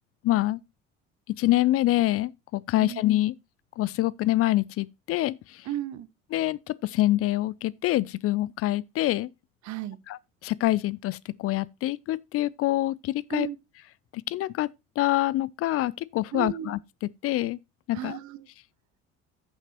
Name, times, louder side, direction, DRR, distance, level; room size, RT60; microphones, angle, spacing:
voice 1, 0.2-0.6 1.4-3.3 3.8-5.7 6.3-9.3 10.1-13.5 14.1-14.7 15.0-17.6 17.9-18.2, left 16 dB, 35° left, 0.4 m, -26 dB
voice 2, 5.7-6.1 9.6-10.0 13.3-13.6 16.3-16.7 17.9-18.5, right 12 dB, 45° right, 0.9 m, -34 dB
15.0 x 5.9 x 2.8 m
figure-of-eight pair, 55°, 40 cm